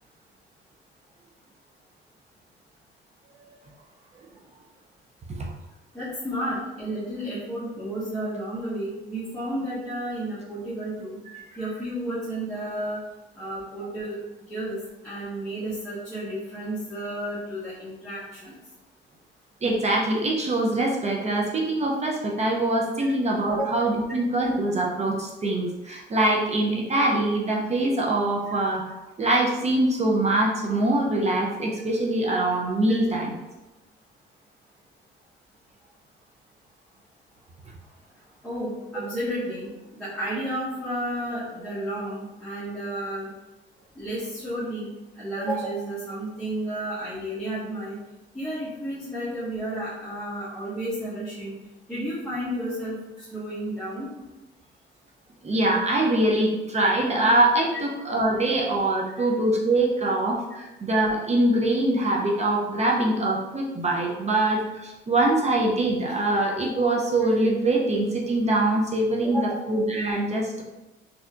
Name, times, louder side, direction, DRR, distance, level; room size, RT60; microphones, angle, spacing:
voice 1, 5.9-11.2 11.6-13.0 13.3-14.2 14.5-14.8 15.0-18.5 23.0-23.1 23.5-23.7 28.5-28.6 32.9-33.0 38.4-43.3 43.9-44.9 45.1-48.0 48.3-51.5 51.9-53.0 53.3-54.1 57.7-57.8 59.1-59.2 60.5-60.6 62.8-62.9 69.2-69.7, right 1 dB, 5° left, -12 dB, 1.3 m, -32 dB
voice 2, 19.6-28.8 29.2-33.4 55.4-70.6, right 2 dB, 35° right, -1 dB, 0.6 m, -23 dB
4.2 x 2.8 x 2.4 m, 1.1 s
cardioid pair, 90°, 20 cm